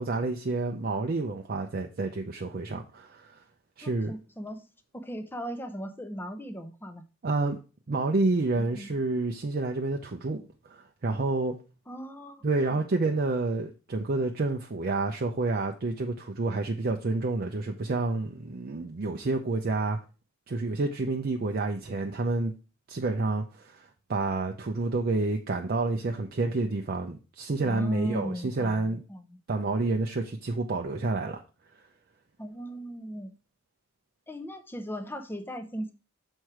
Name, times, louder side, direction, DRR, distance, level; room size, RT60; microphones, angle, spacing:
voice 1, 0.0-3.4 3.8-4.1 7.2-7.6 7.9-11.6 12.4-20.0 20.5-22.5 22.9-29.0 29.5-31.4, right 3 dB, 45° right, 0.5 m, -29 dB
voice 2, 3.8-4.6 4.9-7.0 8.6-8.9 11.9-12.8 27.6-29.4 32.4-33.3 34.3-35.9, equal, 10° left, 0.6 m, -38 dB
6.4 x 4.4 x 4.7 m
head